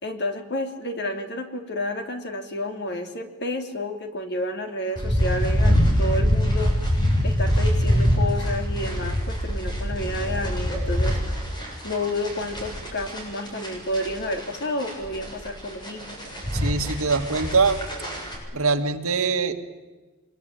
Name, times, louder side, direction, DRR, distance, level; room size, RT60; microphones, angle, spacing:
voice 1, 0.0-6.7 7.2-11.2 11.8-16.2, left 1 dB, 50° left, 5 dB, 3.1 m, -30 dB
sound 1, 5.0-18.4, equal, 20° left, 7.4 m, -24 dB
voice 2, 16.5-17.8 18.5-19.5, right 4 dB, 75° right, 6 dB, 2.1 m, -23 dB
24.0 x 22.5 x 9.2 m, 1.3 s
head